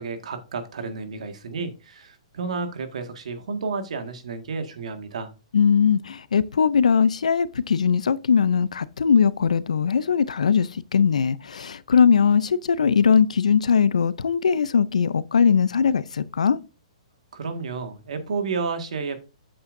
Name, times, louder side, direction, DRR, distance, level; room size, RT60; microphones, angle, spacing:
voice 1, 0.0-5.3 17.3-19.2, right 4 dB, 75° right, 1.8 m, -31 dB
voice 2, 5.5-16.6, left 6 dB, 85° left, 0.5 m, -20 dB
8.6 x 7.6 x 2.6 m
hypercardioid pair, 135°, 4 cm